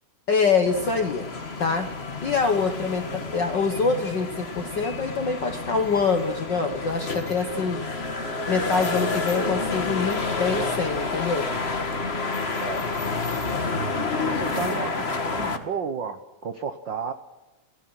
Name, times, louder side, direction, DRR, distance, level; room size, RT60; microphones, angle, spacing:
voice 1, 0.3-1.3 1.6-1.9 2.2-7.8 8.5-11.5 14.6-14.7, left 4 dB, 55° left, 6 dB, 1.3 m, -25 dB
sound 1, 0.7-15.6, left 3 dB, 30° left, 1.3 m, -29 dB
voice 2, 12.6-12.9 14.2-17.1, right 6 dB, 65° right, 8 dB, 1.1 m, -33 dB
29.5 x 16.5 x 6.1 m, 1.1 s
omnidirectional pair, 3.6 m